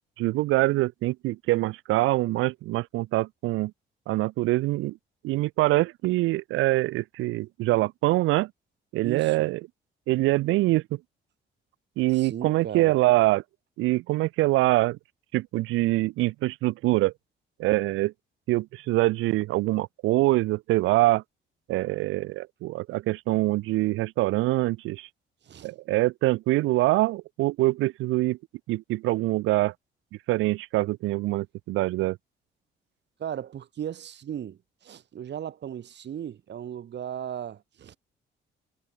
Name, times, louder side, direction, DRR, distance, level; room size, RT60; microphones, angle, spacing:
voice 1, 0.2-3.7 4.1-5.0 5.2-8.5 8.9-9.6 10.1-11.0 12.0-13.4 13.8-15.0 15.3-17.1 17.6-18.1 18.5-21.2 21.7-25.1 25.6-28.4 28.7-29.7 30.3-32.2, right 19 dB, 90° right, 0.5 m, -24 dB
voice 2, 9.0-9.5 12.1-12.9 25.4-25.7 33.2-38.0, right 9 dB, 60° right, 3.2 m, -36 dB
cardioid pair, 90°, 20 cm